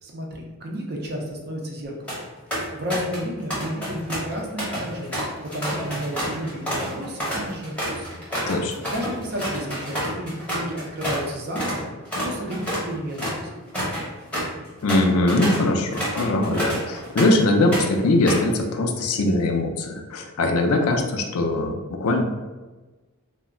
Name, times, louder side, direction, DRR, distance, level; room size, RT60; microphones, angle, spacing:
voice 1, 0.0-2.2 2.7-8.2 8.9-11.9 12.2-13.5, equal, 45° right, 0 dB, 0.5 m, -32 dB
sound 1, 1.8-2.2 2.5-3.2 3.5-11.3 11.5-11.8 12.1-17.4 17.7-18.5, equal, 5° left, 0.7 m, -29 dB
voice 2, 14.8-22.2, left 2 dB, 70° left, 3 dB, 0.4 m, -21 dB
2.2 x 2.1 x 3.6 m, 1.2 s
head